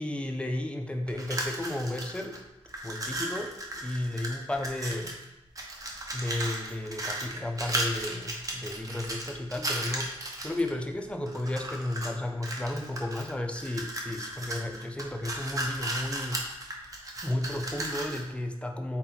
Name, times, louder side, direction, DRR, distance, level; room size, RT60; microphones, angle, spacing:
voice 1, 0.0-2.4 2.8-5.2 6.1-16.4 17.2-19.0, left 1 dB, 10° left, 3 dB, 0.4 m, -33 dB
sound 1, 1.1-2.4 2.6-5.2 5.5-10.7 11.3-12.1 12.4-18.3, right 1 dB, 35° right, 0.6 m, -35 dB
4.0 x 2.9 x 3.9 m, 1.0 s
wide cardioid pair, 150°, 11 cm